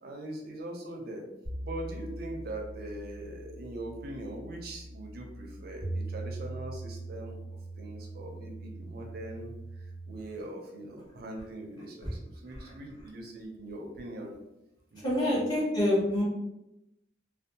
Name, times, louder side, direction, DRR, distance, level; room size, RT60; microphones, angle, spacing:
voice 1, 0.0-1.2 1.6-7.4 7.8-14.3 14.9-15.0 15.3-15.4, right 1 dB, 60° right, 1 dB, 0.4 m, -41 dB
sound 1, 1.4-10.2, right 2 dB, 55° left, 1.3 m, -41 dB
voice 2, 15.0-16.2, left 1 dB, 20° left, -7 dB, 1.0 m, -27 dB
2.6 x 2.2 x 2.7 m, 0.92 s
head